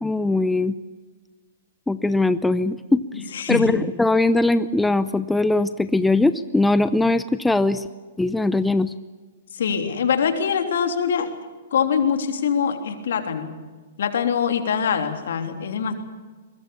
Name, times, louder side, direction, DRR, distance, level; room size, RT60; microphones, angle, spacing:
voice 1, 0.0-0.7 1.9-7.9 8.2-8.9, left 2 dB, 5° left, 13 dB, 0.7 m, -21 dB
voice 2, 3.1-3.8 9.5-11.3 11.7-13.5 14.0-15.9, left 7 dB, 70° left, 6 dB, 3.3 m, -23 dB
23.0 x 21.5 x 7.0 m, 1.4 s
hypercardioid pair, 125°, 0 cm